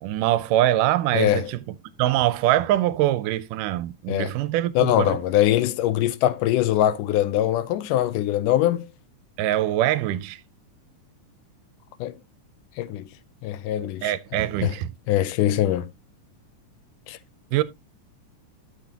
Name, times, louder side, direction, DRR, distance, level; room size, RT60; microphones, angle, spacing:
voice 1, 0.0-1.6 2.0-5.2 9.4-10.4 14.0-14.9 17.5-17.6, right 13 dB, 80° right, 2.2 m, -23 dB
voice 2, 1.1-1.5 4.1-4.3 4.8-8.9 12.0-12.2 12.8-13.1 13.4-14.1 14.6-14.7 15.1-15.9 17.1-17.2, left 12 dB, 80° left, 2.1 m, -22 dB
12.5 x 6.5 x 2.9 m
omnidirectional pair, 3.8 m